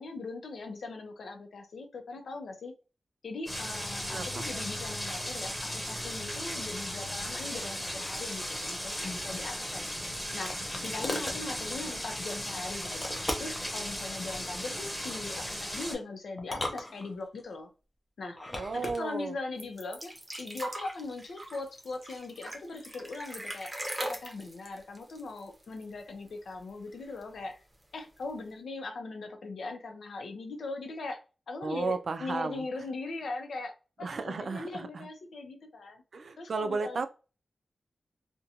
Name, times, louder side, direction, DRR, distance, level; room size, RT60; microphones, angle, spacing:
voice 1, 0.0-2.7 3.2-9.9 10.3-10.5 10.8-17.7 18.2-18.4 18.7-27.6 27.9-31.2 31.5-36.0 36.4-37.1, left 3 dB, 90° left, 0.6 m, -40 dB
sound 1, 3.5-15.9, equal, 5° left, 1.1 m, -36 dB
voice 2, 4.1-4.5 18.5-19.4 31.6-32.7 34.0-35.1 36.1-37.1, right 4 dB, 60° right, 0.3 m, -34 dB
sound 2, 9.6-11.4 12.8-13.7 15.0-15.5 16.4-17.4 18.3-19.0, left 1 dB, 25° left, 0.6 m, -38 dB
sound 3, 19.6-26.0 26.3-26.4 26.7-27.4 28.2-28.3, right 1 dB, 20° right, 0.6 m, -40 dB
2.5 x 2.2 x 2.7 m
wide cardioid pair, 120°, 0 cm